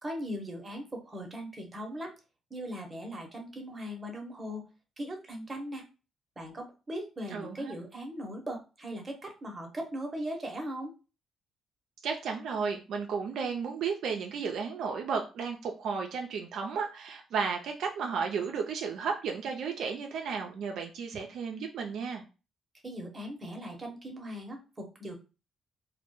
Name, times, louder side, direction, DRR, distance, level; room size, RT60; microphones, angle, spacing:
voice 1, 0.0-2.1 2.5-4.7 5.0-5.8 6.4-10.9 22.8-25.2, equal, 25° right, 2 dB, 0.8 m, -39 dB
voice 2, 7.3-7.7 12.0-22.2, right 5 dB, 75° right, 2 dB, 0.4 m, -33 dB
2.1 x 2.1 x 2.9 m, 0.31 s
cardioid pair, 90°, 0 cm